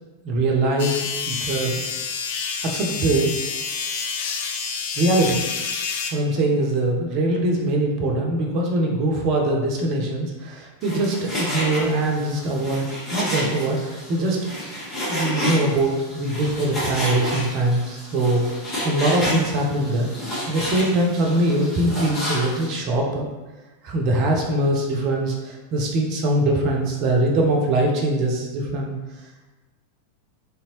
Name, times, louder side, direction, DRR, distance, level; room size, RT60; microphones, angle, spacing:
voice 1, 0.2-1.8 2.6-3.4 4.9-5.4 6.1-14.4 15.1-18.5 18.8-20.1 20.5-23.3 23.8-29.0, right 1 dB, 40° right, 1 dB, 0.6 m, -22 dB
sound 1, 0.8-6.1, left 6 dB, 50° left, 0.4 m, -28 dB
Frying (food), 10.8-22.7, equal, 25° left, 1.3 m, -30 dB
3.3 x 2.8 x 3.0 m, 1.2 s
figure-of-eight pair, 90°, 0 cm